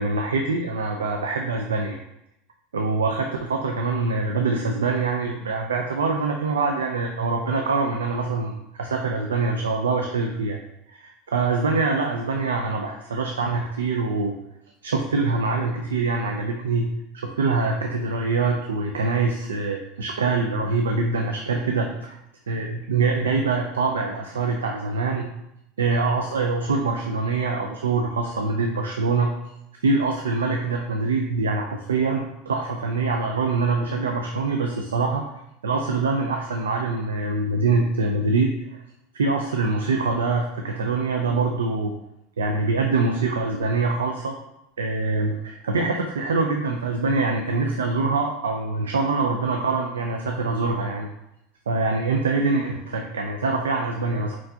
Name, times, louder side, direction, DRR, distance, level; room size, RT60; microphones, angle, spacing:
voice 1, 0.0-2.0 2.7-10.6 10.9-14.3 14.8-16.9 17.1-22.2 22.5-25.3 25.8-29.3 29.8-35.2 35.6-38.8 39.1-41.9 42.4-44.3 44.8-51.1 51.7-54.4, right 3 dB, 90° right, 2 dB, 0.4 m, -24 dB
4.5 x 4.3 x 2.7 m, 0.82 s
hypercardioid pair, 90°, 0 cm